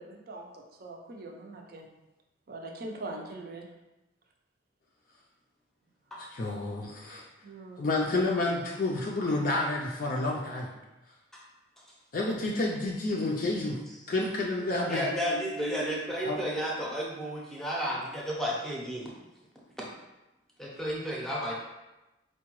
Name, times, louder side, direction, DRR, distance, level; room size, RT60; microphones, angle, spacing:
voice 1, 0.0-1.9 2.5-3.7 7.4-8.0, right 2 dB, 50° right, 1 dB, 0.5 m, -42 dB
voice 2, 6.2-7.2 7.8-10.7 12.1-13.8 14.1-15.0 16.2-16.4, left 2 dB, 45° left, -2 dB, 0.4 m, -29 dB
voice 3, 14.9-19.1 19.8-19.9 20.6-21.5, equal, ahead, -4 dB, 0.6 m, -32 dB
4.6 x 2.2 x 3.0 m, 1.0 s
head